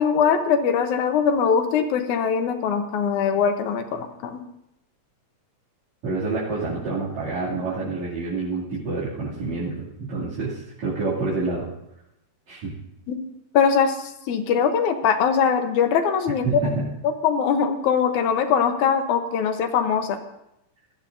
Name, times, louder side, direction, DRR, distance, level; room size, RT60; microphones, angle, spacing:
voice 1, 0.0-4.4 13.1-13.2 13.5-16.6 17.0-20.2, left 7 dB, 75° left, 7 dB, 2.3 m, -22 dB
voice 2, 6.0-9.7 10.0-11.7 12.5-12.7 16.4-16.9, right 3 dB, 65° right, -10 dB, 3.9 m, -27 dB
20.5 x 13.5 x 2.6 m, 0.84 s
omnidirectional pair, 3.6 m